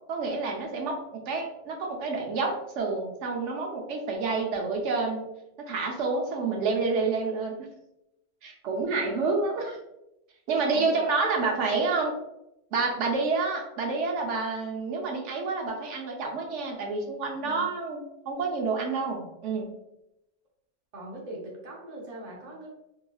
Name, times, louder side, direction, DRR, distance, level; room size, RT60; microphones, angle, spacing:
voice 1, 0.1-5.2 5.7-7.6 8.4-9.8 10.5-12.1 12.7-19.7, right 4 dB, 75° right, 1 dB, 0.9 m, -28 dB
voice 2, 10.7-11.3 17.4-17.7 20.9-22.7, right 1 dB, 40° right, -2 dB, 0.7 m, -41 dB
3.0 x 2.7 x 2.2 m, 0.87 s
omnidirectional pair, 1.2 m